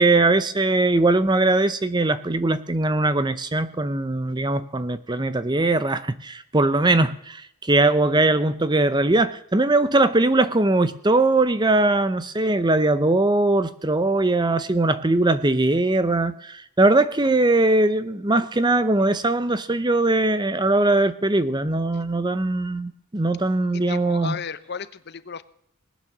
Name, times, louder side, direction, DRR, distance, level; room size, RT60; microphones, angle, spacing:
voice 1, 0.0-24.4, right 2 dB, 20° right, 13 dB, 0.7 m, -21 dB
voice 2, 23.7-25.4, left 6 dB, 45° left, 14 dB, 0.8 m, -34 dB
20.0 x 9.4 x 7.3 m, 0.72 s
head